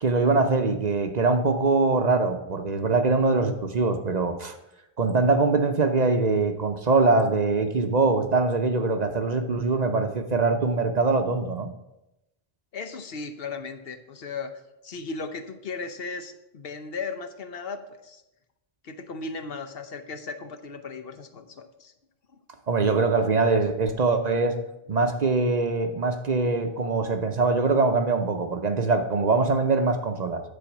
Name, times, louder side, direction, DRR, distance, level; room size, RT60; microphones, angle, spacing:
voice 1, 0.0-4.5 5.0-11.7 22.7-24.6 24.9-30.4, right 3 dB, 45° right, 7 dB, 0.8 m, -23 dB
voice 2, 12.7-14.5 14.8-18.2 18.8-21.9, left 4 dB, 70° left, 8 dB, 1.0 m, -36 dB
10.5 x 4.3 x 7.1 m, 0.91 s
omnidirectional pair, 1.0 m